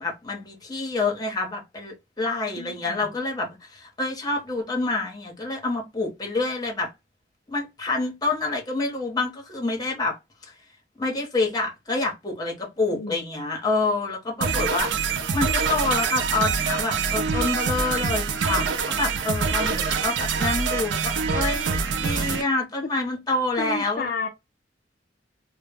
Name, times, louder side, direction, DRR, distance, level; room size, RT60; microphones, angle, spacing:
voice 1, 0.0-6.9 7.5-10.2 11.0-24.1, left 3 dB, 20° left, 0.7 m, -27 dB
voice 2, 2.6-3.1 12.9-13.2 23.6-24.3, left 3 dB, 50° left, 0.4 m, -31 dB
sound 1, 14.4-22.4, right 5 dB, 70° right, 0.4 m, -25 dB
2.0 x 2.0 x 3.3 m
head